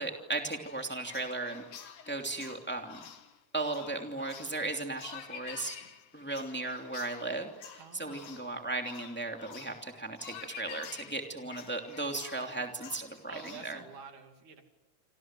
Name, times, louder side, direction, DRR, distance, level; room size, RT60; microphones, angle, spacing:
voice 1, 0.0-3.0 3.5-5.8 6.1-13.8, right 2 dB, 5° left, 4 dB, 2.5 m, -36 dB
sound 1, 0.6-13.8, left 8 dB, 85° left, 3.3 m, -49 dB
voice 2, 7.8-8.6 13.3-14.6, right 6 dB, 85° right, 6 dB, 4.1 m, -49 dB
27.5 x 26.5 x 7.7 m, 0.95 s
omnidirectional pair, 3.4 m